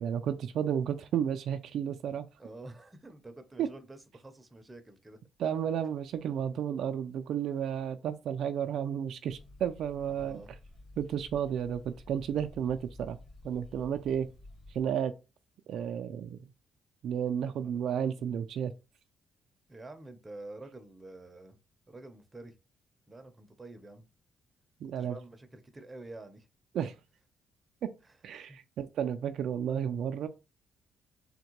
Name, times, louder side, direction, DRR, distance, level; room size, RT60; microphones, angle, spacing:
voice 1, 0.0-2.3 3.6-3.7 5.4-10.4 11.0-13.2 13.4-14.3 14.7-15.1 15.7-16.4 17.0-18.7 24.8-25.2 26.7-26.9 27.8-27.9 28.2-30.3, right 9 dB, 75° right, 0.3 m, -32 dB
voice 2, 2.4-5.2 10.2-10.5 17.5-17.9 19.7-21.6 21.9-22.5 23.1-24.1 25.0-26.5 28.0-28.1 28.5-28.6, right 2 dB, 20° right, 0.6 m, -48 dB
sound 1, 9.3-14.8, left 2 dB, 55° left, 1.9 m, -52 dB
3.5 x 2.2 x 2.9 m
cardioid pair, 90°, 0 cm